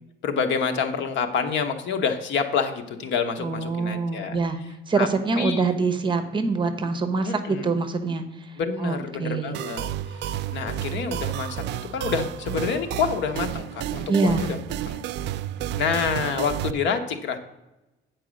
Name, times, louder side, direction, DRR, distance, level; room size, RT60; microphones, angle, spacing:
voice 1, 0.2-4.4 5.0-5.1 5.4-5.6 7.2-7.7 8.6-14.6 14.9-15.0 15.8-17.4, left 6 dB, 75° left, 7 dB, 1.1 m, -27 dB
voice 2, 3.4-4.6 4.9-9.5 14.1-14.4, right 4 dB, 25° right, 9 dB, 0.8 m, -25 dB
sound 1, 9.5-16.7, right 11 dB, 65° right, 0.4 m, -31 dB
9.0 x 4.7 x 6.3 m, 0.98 s
cardioid pair, 150°, 19 cm